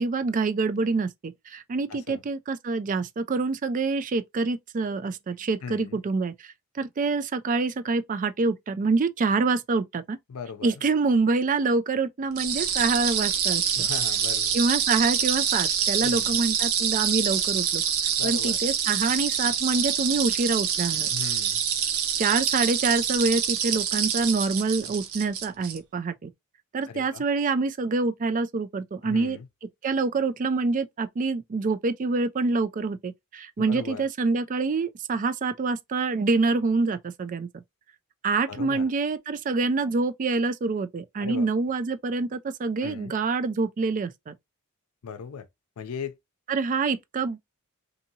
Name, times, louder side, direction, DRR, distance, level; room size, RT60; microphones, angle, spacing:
voice 1, 0.0-10.2 10.6-13.9 14.5-17.8 18.2-21.1 22.2-26.3 26.7-29.4 29.8-37.5 38.2-44.3 46.5-47.4, right 4 dB, 35° right, 0.3 m, -26 dB
voice 2, 5.6-6.0 10.3-10.7 13.8-14.6 16.0-16.4 18.2-18.6 21.1-21.6 26.9-27.2 29.0-29.5 33.6-34.1 38.5-38.8 41.2-41.5 42.8-43.2 45.0-45.5 45.8-46.2, left 6 dB, 90° left, 0.5 m, -37 dB
sound 1, 12.4-25.8, right 8 dB, 80° right, 0.7 m, -26 dB
2.7 x 2.6 x 2.7 m
head